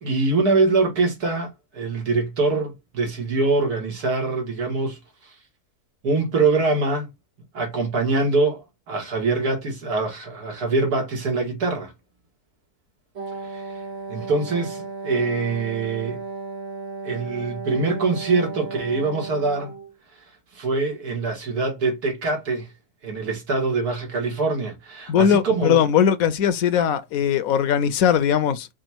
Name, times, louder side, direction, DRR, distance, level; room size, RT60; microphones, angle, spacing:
voice 1, 0.0-5.3 6.0-7.1 7.5-11.9 13.4-16.2 17.0-19.7 20.5-22.7 23.0-25.8, right 3 dB, 90° right, 2.2 m, -24 dB
Wind instrument woodwind instrument, 13.2-19.9, right 4 dB, 50° right, 1.2 m, -35 dB
voice 2, 25.1-28.7, left 8 dB, 75° left, 1.0 m, -20 dB
4.9 x 2.4 x 4.3 m
omnidirectional pair, 1.6 m